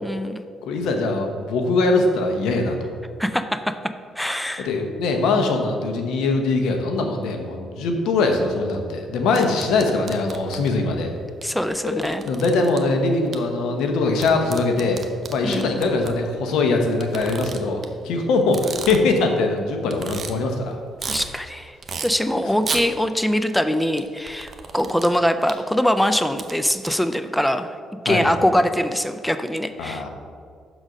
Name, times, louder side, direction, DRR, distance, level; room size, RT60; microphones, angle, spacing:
voice 1, 0.0-0.4 3.2-3.7 4.2-4.7 11.4-12.2 15.4-15.8 21.1-21.8 22.0-27.7 28.0-30.1, equal, 5° left, 9 dB, 0.4 m, -23 dB
voice 2, 0.6-2.9 4.6-11.1 11.8-15.0 15.3-20.8 28.1-28.3 29.8-30.1, left 3 dB, 85° left, 4 dB, 0.9 m, -22 dB
sound 1, 9.3-10.7 11.4-11.5 11.7-12.8 13.3-13.4 14.2-16.1 17.0-17.9 18.4-19.2 19.6-19.7 19.9-20.3 20.7-21.3 21.8-22.1 22.6-22.8 24.0-25.1 25.5-25.6 26.2-26.9, right 5 dB, 45° right, 0.7 m, -32 dB
6.2 x 4.0 x 6.2 m, 2.1 s
cardioid pair, 90°, 0 cm